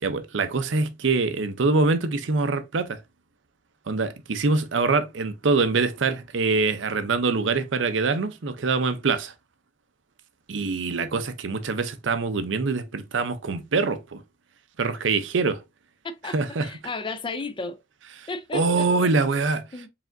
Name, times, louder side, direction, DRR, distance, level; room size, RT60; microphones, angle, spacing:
voice 1, 0.0-3.0 3.9-9.3 10.5-14.2 14.8-15.6 16.2-16.7 18.2-19.6, right 4 dB, 75° right, 0.6 m, -24 dB
voice 2, 16.0-17.8 18.3-19.1 19.7-19.9, left 3 dB, 25° left, 0.5 m, -34 dB
4.8 x 3.4 x 2.6 m
head